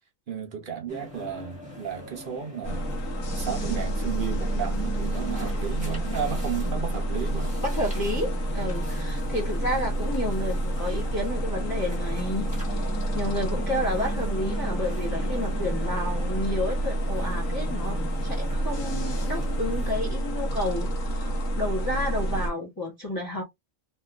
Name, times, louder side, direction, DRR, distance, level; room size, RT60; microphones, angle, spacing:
voice 1, 0.3-2.9 3.3-7.5 8.8-8.9, right 8 dB, 55° right, 0.6 m, -33 dB
sound 1, 0.9-20.1, equal, 5° right, 1.1 m, -41 dB
sound 2, 2.6-22.5, right 1 dB, 80° left, 1.3 m, -29 dB
voice 2, 7.6-23.4, left 1 dB, 20° left, 0.8 m, -31 dB
3.0 x 2.5 x 2.3 m
omnidirectional pair, 1.4 m